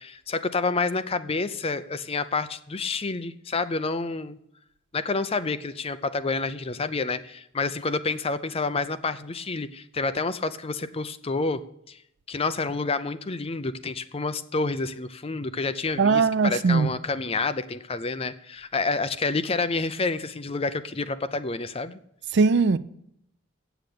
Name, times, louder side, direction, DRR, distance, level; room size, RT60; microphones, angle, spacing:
voice 1, 0.0-4.4 4.9-12.0 12.3-22.0, left 3 dB, 30° left, 0.6 m, -29 dB
voice 2, 16.0-16.9 22.3-22.8, right 4 dB, 55° right, 0.5 m, -20 dB
8.0 x 7.9 x 8.5 m
head